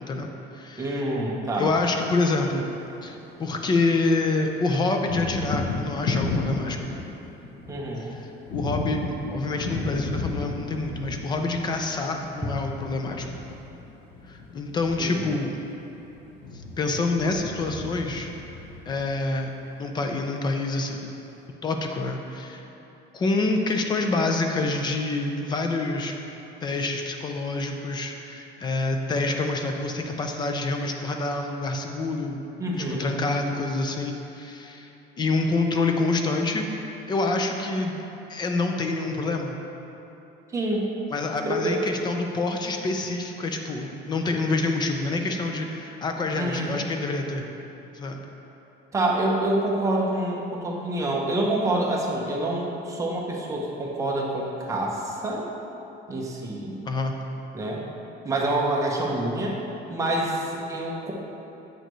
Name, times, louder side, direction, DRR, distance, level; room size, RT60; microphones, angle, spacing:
voice 1, 0.0-1.0 1.6-2.7 3.0-6.8 8.5-9.0 9.3-13.3 14.3-15.5 16.8-18.3 18.9-19.5 19.8-21.1 21.6-22.7 23.1-26.2 26.6-32.4 32.7-34.9 35.2-36.7 37.1-38.0 38.3-39.6 41.1-47.5 47.9-48.2 56.9-57.1, left 3 dB, 25° left, 4 dB, 0.4 m, -27 dB
voice 2, 0.8-1.7 7.7-8.1 15.0-15.3 32.6-33.1 40.5-40.8 41.4-41.8 46.4-46.8 48.9-55.4 56.1-56.8 57.5-57.8 58.2-59.6 59.9-61.1, right 1 dB, 15° right, -2 dB, 0.7 m, -27 dB
Thunder, 2.8-4.0 4.3-19.6, left 3 dB, 65° left, 0.8 m, -34 dB
7.9 x 6.6 x 3.1 m, 3.0 s
cardioid pair, 170°, 19 cm